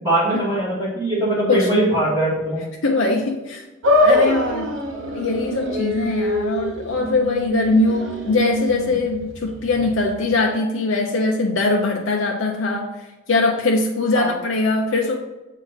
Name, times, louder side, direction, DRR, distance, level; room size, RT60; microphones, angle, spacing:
voice 1, 0.0-2.6 14.1-14.3, right 1 dB, 20° right, -10 dB, 2.1 m, -21 dB
voice 2, 1.5-1.8 2.8-3.6 4.0-4.7 5.1-12.9 13.3-15.2, left 3 dB, 85° left, 0 dB, 0.6 m, -21 dB
sound 1, 3.8-10.3, left 1 dB, 80° right, 0.7 m, -23 dB
7.2 x 2.7 x 5.6 m, 1.1 s
head